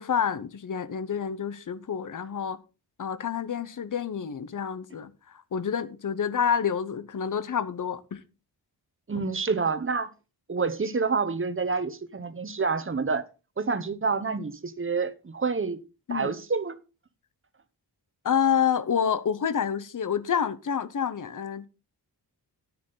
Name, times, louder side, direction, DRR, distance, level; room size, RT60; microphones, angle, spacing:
voice 1, 0.0-2.6 3.0-8.2 16.1-16.3 18.2-21.7, left 7 dB, 50° left, 0.8 m, -28 dB
voice 2, 9.1-10.1 10.5-13.2 13.6-15.8 16.1-16.8, right 4 dB, 30° right, 0.9 m, -28 dB
10.0 x 9.6 x 3.9 m
wide cardioid pair, 160°, 40 cm